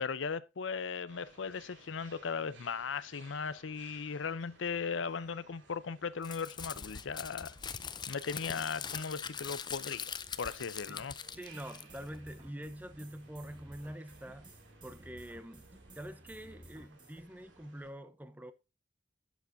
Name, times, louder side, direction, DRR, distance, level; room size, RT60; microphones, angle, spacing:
voice 1, 0.0-7.5 8.1-10.1 10.4-11.1, left 5 dB, 85° left, 0.6 m, -37 dB
sound 1, 1.1-17.9, right 3 dB, 75° right, 2.5 m, -61 dB
Crumpling crinkling, 6.2-12.2, left 7 dB, 25° left, 0.5 m, -42 dB
sound 2, 10.2-17.2, right 1 dB, 25° right, 1.8 m, -56 dB
voice 2, 11.3-14.5 14.8-15.6 16.0-18.5, right 1 dB, 10° right, 0.7 m, -45 dB
11.5 x 8.3 x 2.6 m
head